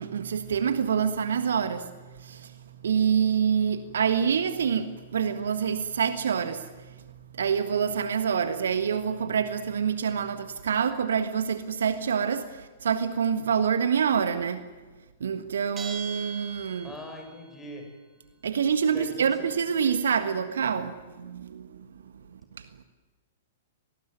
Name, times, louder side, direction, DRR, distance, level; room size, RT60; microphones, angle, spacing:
voice 1, 0.0-7.0 7.3-14.6 15.2-16.9 18.4-22.7, right 7 dB, 65° right, 1.6 m, -27 dB
Bell, 15.8-17.3, right 6 dB, 20° right, 4.3 m, -39 dB
voice 2, 16.8-17.8 18.9-19.1, left 1 dB, 15° left, 7.2 m, -41 dB
24.0 x 19.5 x 9.3 m
figure-of-eight pair, 105°, 0 cm